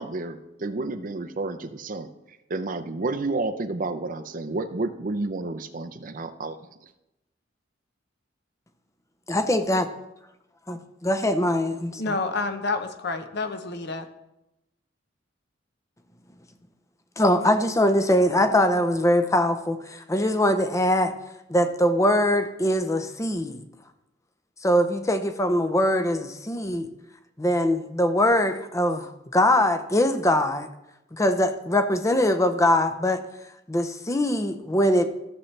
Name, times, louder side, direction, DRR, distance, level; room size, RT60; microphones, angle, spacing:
voice 1, 0.0-2.1 2.5-6.6, right 3 dB, 45° right, 0.6 m, -30 dB
voice 2, 9.3-9.9 10.7-12.0 17.2-21.1 21.5-23.6 24.6-26.9 27.4-30.7 31.1-33.2 33.7-35.1, left 1 dB, 15° left, 0.6 m, -22 dB
voice 3, 11.9-14.1, left 3 dB, 60° left, 0.9 m, -29 dB
14.5 x 7.3 x 3.3 m
head